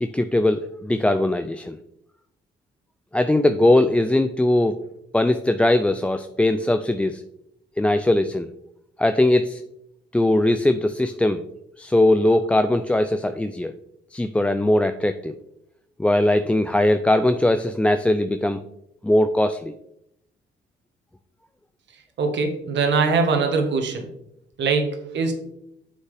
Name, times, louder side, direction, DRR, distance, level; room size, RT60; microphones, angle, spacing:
voice 1, 0.0-1.8 3.1-4.8 5.1-7.2 7.8-8.5 9.0-9.6 10.1-11.4 11.8-13.7 14.1-15.3 16.0-18.6 19.0-19.7, left 1 dB, 5° left, 10 dB, 0.3 m, -20 dB
voice 2, 22.2-24.1 24.6-25.3, right 4 dB, 65° right, 4 dB, 1.5 m, -22 dB
8.0 x 5.6 x 3.4 m, 0.79 s
cardioid pair, 90°, 20 cm